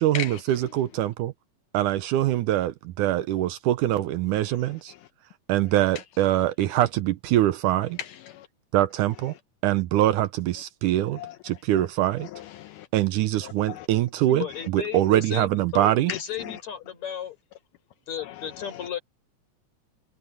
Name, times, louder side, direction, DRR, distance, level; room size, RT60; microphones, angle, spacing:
voice 1, 0.0-1.3 1.7-4.9 5.5-8.0 8.7-9.3 9.6-12.3 12.9-14.5 14.7-16.1, right 14 dB, 75° right, 2.1 m, -23 dB
voice 2, 8.0-8.5 11.2-11.4 12.2-12.9 13.4-13.9 16.1-16.6 18.7-18.8, left 11 dB, 80° left, 2.2 m, -36 dB
voice 3, 14.3-17.4 18.1-19.0, left 9 dB, 55° left, 6.1 m, -34 dB
omnidirectional pair, 3.9 m